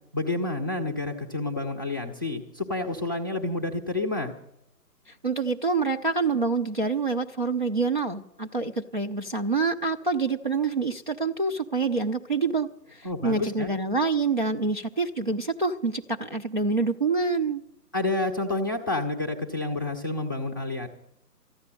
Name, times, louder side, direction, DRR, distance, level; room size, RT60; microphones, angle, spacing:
voice 1, 0.1-4.3 13.0-13.7 17.9-20.9, left 2 dB, 15° left, 3 dB, 0.6 m, -29 dB
voice 2, 5.2-17.6, right 4 dB, 35° right, 3 dB, 0.4 m, -26 dB
14.0 x 10.0 x 7.5 m, 0.78 s
figure-of-eight pair, 145°, 48 cm